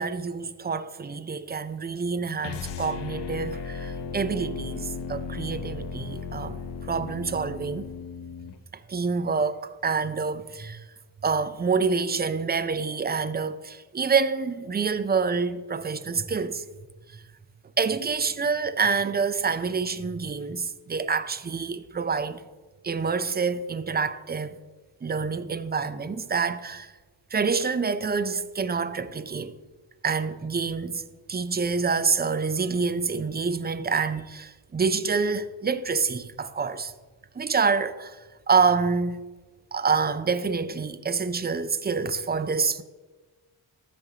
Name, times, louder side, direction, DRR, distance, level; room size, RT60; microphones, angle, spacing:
voice 1, 0.0-6.6 6.9-7.9 8.7-10.8 11.2-16.6 17.1-17.2 17.8-22.4 22.8-24.6 25.0-26.9 27.3-29.6 30.0-31.0 31.3-36.9 37.3-39.2 39.7-42.8, right 5 dB, 20° right, 0.5 m, -27 dB
sound 1, 2.4-8.6, left 5 dB, 65° left, 0.7 m, -36 dB
14.0 x 5.3 x 2.8 m
cardioid pair, 55°, 46 cm